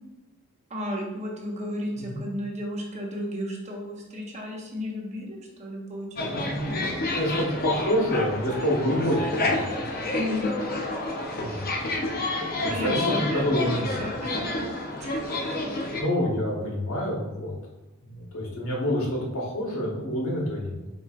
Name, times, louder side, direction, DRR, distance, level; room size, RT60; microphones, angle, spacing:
voice 1, 0.7-6.3 10.2-10.5 12.7-14.7 15.0-15.3, left 1 dB, 30° right, -1 dB, 0.8 m, -33 dB
voice 2, 6.2-6.8 7.1-9.6 11.4-11.7 12.6-13.9 15.9-17.5 18.0-20.9, equal, 80° left, -3 dB, 1.2 m, -27 dB
sound 1, 6.2-16.0, left 2 dB, 45° left, 0.6 m, -29 dB
4.6 x 4.3 x 2.4 m, 1.0 s
head